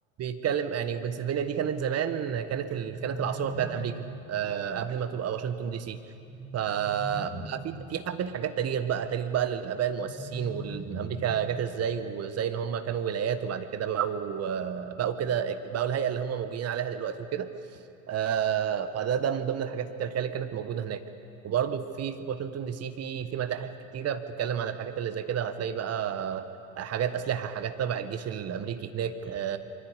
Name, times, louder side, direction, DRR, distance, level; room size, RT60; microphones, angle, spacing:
voice 1, 0.2-6.0 6.5-17.5 18.1-21.0 21.4-26.4 26.8-29.6, right 8 dB, 35° right, 10 dB, 1.4 m, -30 dB
sound 1, 2.3-4.3 6.0-7.9 9.7-11.7, right 1 dB, 10° right, 6.3 m, -41 dB
24.0 x 14.0 x 8.3 m, 2.6 s
hypercardioid pair, 75°, 42 cm